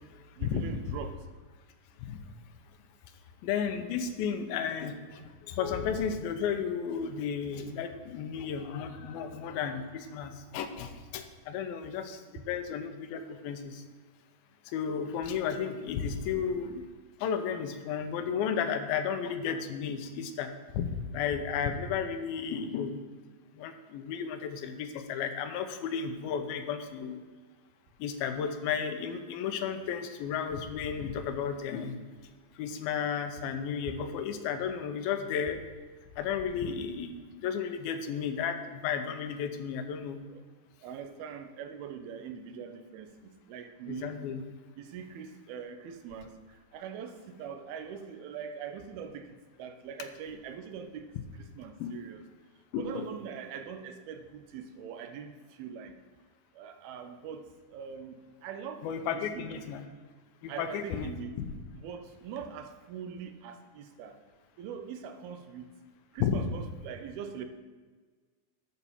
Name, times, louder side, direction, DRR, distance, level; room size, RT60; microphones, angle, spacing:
voice 1, 0.4-1.2 40.3-40.4 40.8-44.2 44.8-52.2 52.8-55.9 56.5-58.9 59.1-59.7 60.5-61.3 61.7-64.2 64.6-65.7 66.1-67.4, right 7 dB, 90° right, 7 dB, 2.7 m, -42 dB
voice 2, 3.4-13.8 14.7-16.8 17.2-20.5 20.7-23.0 23.6-27.2 28.0-32.0 32.6-35.6 36.2-40.2 43.9-44.4 51.8-52.0 52.7-53.1 58.8-59.9 60.4-61.1 61.4-61.5 66.2-66.4, left 7 dB, 85° left, 8 dB, 2.6 m, -33 dB
11.5 x 4.2 x 7.1 m, 1.4 s
omnidirectional pair, 4.3 m